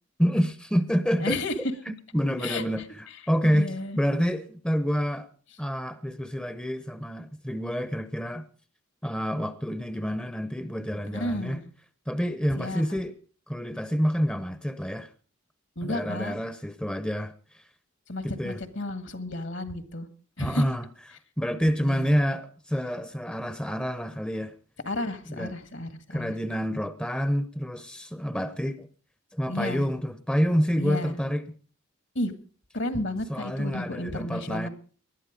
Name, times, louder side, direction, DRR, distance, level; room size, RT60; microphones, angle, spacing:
voice 1, 0.2-1.4 1.9-5.3 5.6-8.5 9.0-11.6 12.1-13.1 13.5-15.1 15.8-17.3 18.2-18.6 20.4-20.8 21.4-24.5 25.3-25.5 26.1-28.9 29.3-31.4 33.3-34.7, equal, 5° left, 0.7 m, -28 dB
voice 2, 1.2-1.5 2.4-2.7 3.1-3.2 3.4-4.0 11.1-11.7 12.6-12.8 15.8-16.3 18.1-20.1 20.4-20.6 21.6-22.2 24.9-26.3 29.5-29.9 30.8-31.2 32.2-32.3 32.7-34.7, left 1 dB, 60° left, 1.8 m, -32 dB
20.0 x 12.0 x 5.1 m
head